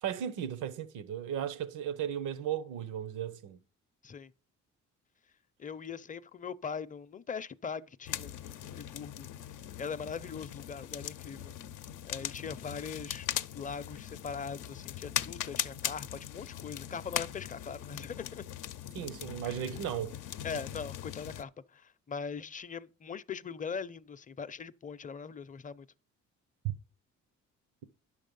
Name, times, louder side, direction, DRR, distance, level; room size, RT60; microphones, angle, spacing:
voice 1, 0.0-3.6 18.9-20.2, right 9 dB, 90° right, 0.9 m, -36 dB
voice 2, 5.6-9.3 9.8-11.5 12.1-13.3 13.5-18.4 19.5-19.6 20.4-25.9, left 6 dB, 25° left, 0.5 m, -41 dB
sound 1, 8.1-21.4, left 11 dB, 85° left, 0.6 m, -40 dB
10.0 x 6.6 x 5.3 m
cardioid pair, 90°, 30 cm